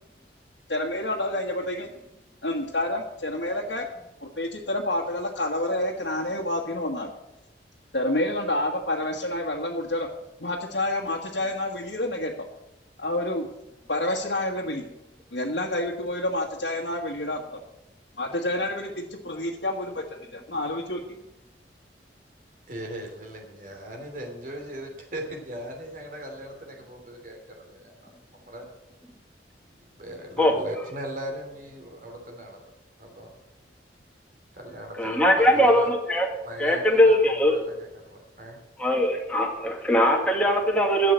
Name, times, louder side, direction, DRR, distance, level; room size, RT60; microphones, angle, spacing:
voice 1, 0.7-1.9 2.4-3.9 4.2-7.1 7.9-10.1 10.4-12.5 13.0-13.5 13.9-14.8 15.3-17.4 18.2-21.0, left 1 dB, 85° left, -3 dB, 1.4 m, -28 dB
voice 2, 22.7-28.7 30.0-32.6 33.0-33.3 34.5-35.9 36.4-38.6, right 1 dB, 50° right, 2 dB, 3.1 m, -39 dB
voice 3, 35.0-36.3 36.6-37.6 38.8-41.1, equal, 5° left, 0 dB, 2.1 m, -21 dB
12.5 x 7.6 x 7.8 m, 0.92 s
head